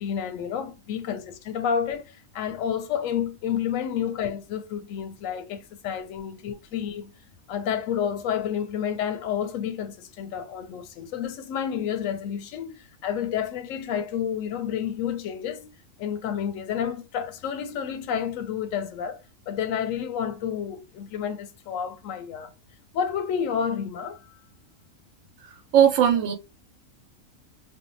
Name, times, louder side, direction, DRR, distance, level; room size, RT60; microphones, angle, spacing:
voice 1, 0.0-7.1 7.5-15.7 16.0-19.2 19.5-22.5 22.9-24.2, left 8 dB, 80° left, 1.0 m, -30 dB
voice 2, 25.4-26.3, right 9 dB, 75° right, 1.0 m, -20 dB
2.7 x 2.1 x 3.8 m
omnidirectional pair, 1.4 m